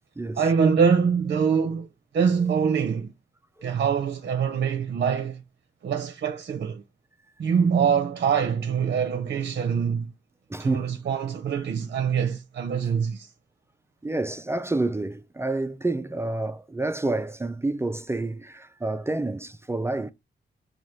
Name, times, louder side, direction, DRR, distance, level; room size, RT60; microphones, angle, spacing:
voice 1, 0.4-1.9 2.1-3.1 3.6-5.4 5.8-6.8 7.4-10.1 10.6-13.3, right 6 dB, 60° right, 0.7 m, -24 dB
voice 2, 10.5-10.9 14.0-20.1, right 2 dB, 15° right, 0.4 m, -29 dB
5.0 x 2.4 x 4.4 m
cardioid pair, 90°, 19 cm